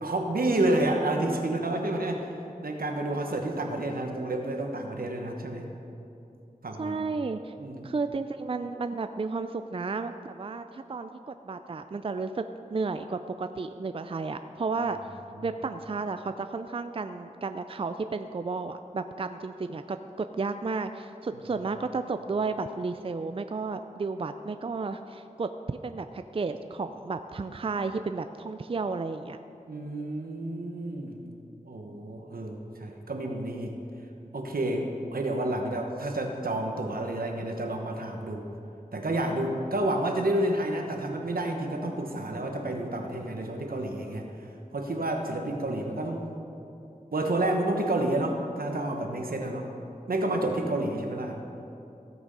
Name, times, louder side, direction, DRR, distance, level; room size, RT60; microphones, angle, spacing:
voice 1, 0.0-2.3 2.6-5.7 6.6-7.0 7.6-7.9 15.4-15.5 29.7-31.3 31.6-33.8 34.3-38.5 38.9-44.3 44.7-46.3 47.1-49.7 50.1-51.6, right 1 dB, 85° right, 3 dB, 1.2 m, -30 dB
voice 2, 6.8-7.5 7.8-12.4 12.7-15.0 15.4-29.4, right 4 dB, 40° right, 9 dB, 0.4 m, -32 dB
16.5 x 6.2 x 5.5 m, 2.8 s
wide cardioid pair, 55°, 15 cm